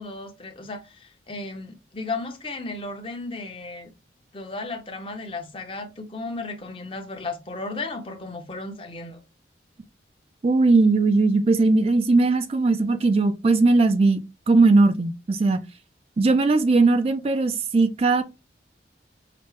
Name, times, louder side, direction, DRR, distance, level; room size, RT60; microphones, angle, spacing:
voice 1, 0.0-3.9 4.3-9.2, left 3 dB, 30° left, 0.7 m, -34 dB
voice 2, 10.4-14.2 14.5-15.6 16.2-18.2, right 3 dB, 35° right, 0.3 m, -19 dB
5.8 x 2.1 x 3.1 m
head